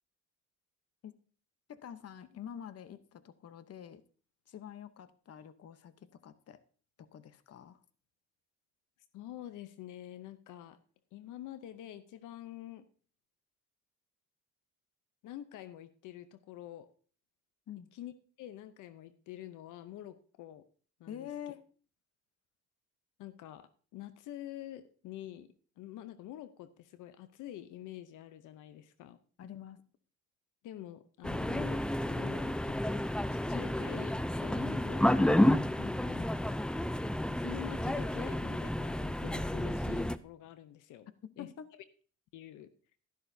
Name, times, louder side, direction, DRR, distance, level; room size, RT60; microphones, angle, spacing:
voice 1, 1.7-4.0 4.5-6.6 7.0-7.8 17.7-17.9 21.1-21.6 29.4-29.8 35.8-36.1 41.2-41.7, left 9 dB, 55° left, 13 dB, 0.9 m, -47 dB
voice 2, 9.1-10.8 11.1-12.8 15.2-16.9 17.9-18.1 18.4-20.6 21.0-21.3 23.2-25.5 25.8-29.2 30.6-33.0 33.3-36.3 37.4-41.1 41.4-41.5 42.3-42.7, left 12 dB, 85° left, 12 dB, 0.7 m, -47 dB
sound 1, 31.2-40.2, left 1 dB, 5° left, 0.4 m, -31 dB
12.0 x 11.0 x 2.7 m, 0.40 s
cardioid pair, 90°, 30 cm